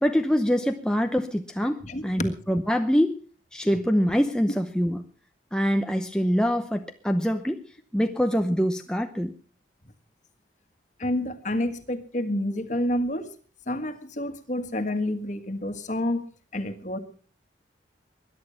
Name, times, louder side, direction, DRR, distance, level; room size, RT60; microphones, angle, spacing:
voice 1, 0.0-3.2 3.5-5.0 5.5-7.6 7.9-9.3, equal, 5° left, 5 dB, 0.7 m, -24 dB
voice 2, 1.8-2.3 11.0-13.3 13.7-16.2 16.5-17.0, left 1 dB, 40° left, 9 dB, 1.7 m, -29 dB
21.0 x 11.0 x 5.7 m, 0.41 s
head